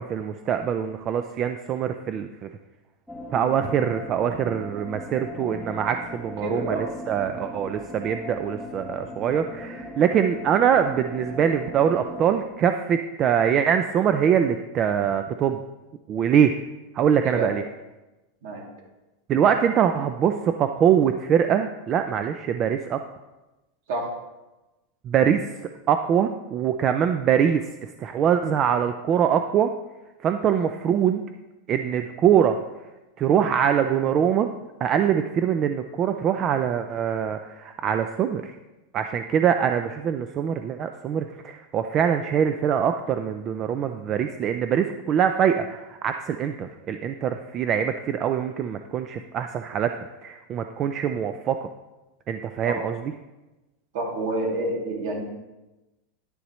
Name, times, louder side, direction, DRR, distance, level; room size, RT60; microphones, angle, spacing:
voice 1, 0.0-2.3 3.3-15.6 16.1-16.5 16.9-17.6 19.3-23.0 25.0-25.4 25.9-29.7 30.2-31.3 31.7-32.6 33.2-34.5 34.8-38.6 38.9-51.7 52.3-53.1, right 8 dB, 25° right, 8 dB, 0.3 m, -23 dB
sound 1, 3.1-12.4, left 1 dB, ahead, 1.0 m, -38 dB
voice 2, 6.4-6.8 17.2-17.5 18.4-18.6 23.9-24.1 52.6-52.8 53.9-55.2, right 2 dB, 55° right, -1 dB, 2.7 m, -28 dB
10.5 x 10.0 x 3.1 m, 1.1 s
supercardioid pair, 170°, 0 cm